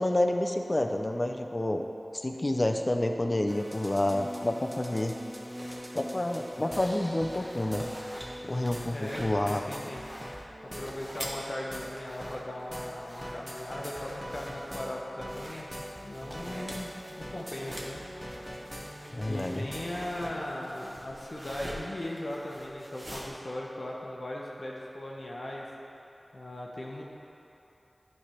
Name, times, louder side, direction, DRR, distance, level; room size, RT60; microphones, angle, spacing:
voice 1, 0.0-1.8 2.1-5.2 5.9-7.9 8.4-9.6 19.1-19.7, left 1 dB, 40° left, 4 dB, 0.5 m, -29 dB
sound 1, 3.5-20.3, equal, 5° left, 1.0 m, -42 dB
sound 2, 4.9-23.3, equal, 20° right, 1.1 m, -46 dB
voice 2, 8.9-10.0 10.8-15.7 16.0-18.0 19.2-25.7 26.3-27.0, left 1 dB, 60° left, -3 dB, 0.9 m, -38 dB
9.5 x 3.4 x 5.8 m, 2.9 s
wide cardioid pair, 45°, 0 cm